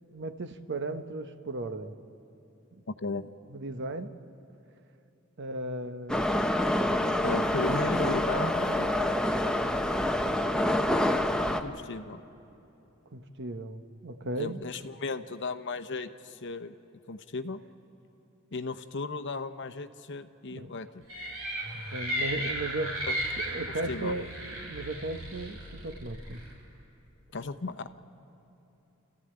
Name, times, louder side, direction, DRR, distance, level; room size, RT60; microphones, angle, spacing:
voice 1, 0.1-1.9 2.7-2.8 3.5-4.2 5.4-6.4 7.7-8.1 13.1-14.6 20.5-20.7 21.9-22.9 23.5-24.3 24.6-26.4, right 2 dB, 60° right, 8 dB, 1.0 m, -36 dB
voice 2, 2.9-3.3 7.2-8.9 11.6-12.2 14.4-16.7 17.1-17.6 18.5-21.0 23.1-23.2 23.7-24.1 27.3-27.9, left 3 dB, 60° left, 9 dB, 0.9 m, -35 dB
Subway metro underground, 6.1-11.6, left 1 dB, 5° left, 0.7 m, -27 dB
sound 1, 21.1-26.5, equal, 90° right, 7.3 m, -35 dB
29.5 x 15.0 x 8.9 m, 2.9 s
head